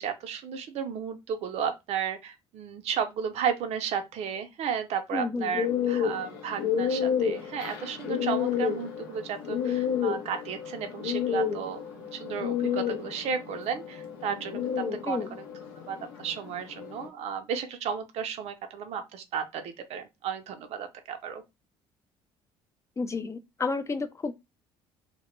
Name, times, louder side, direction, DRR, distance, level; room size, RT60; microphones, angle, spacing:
voice 1, 0.0-14.6 15.0-15.5 15.9-21.4, right 7 dB, 60° right, 0.5 m, -33 dB
voice 2, 5.1-5.6 15.1-15.4 23.0-24.3, left 4 dB, 25° left, 0.3 m, -31 dB
sound 1, 5.6-17.1, left 8 dB, 85° left, 0.6 m, -31 dB
2.1 x 2.0 x 3.0 m
hypercardioid pair, 65°, 12 cm